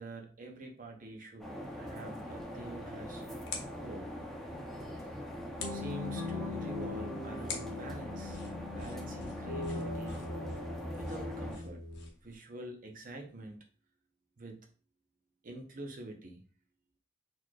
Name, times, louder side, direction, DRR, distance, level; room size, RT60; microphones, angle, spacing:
voice 1, 0.0-3.2 3.8-4.1 5.7-8.4 8.7-10.2 10.9-11.8 12.2-13.6 14.4-14.7 15.4-16.4, right 2 dB, 45° right, 2 dB, 0.7 m, -46 dB
sound 1, 1.4-11.6, equal, ahead, 0.6 m, -42 dB
sound 2, 2.4-12.4, left 5 dB, 60° left, 0.8 m, -49 dB
sound 3, 5.6-12.1, left 3 dB, 75° right, 0.9 m, -41 dB
4.1 x 3.0 x 2.3 m, 0.39 s
head